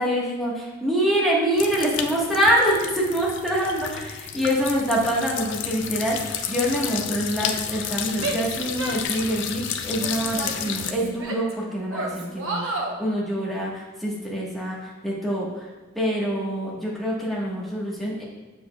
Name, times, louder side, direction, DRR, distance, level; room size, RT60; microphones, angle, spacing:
voice 1, 0.0-15.7 15.9-18.2, equal, ahead, -6 dB, 1.3 m, -25 dB
sound 1, 1.5-10.9, left 8 dB, 60° left, 0.4 m, -31 dB
Female speech woman speaking / Yell, 8.2-9.5 10.0-11.5 11.9-13.0, right 2 dB, 90° right, 0.9 m, -31 dB
7.6 x 6.2 x 2.3 m, 1.3 s
head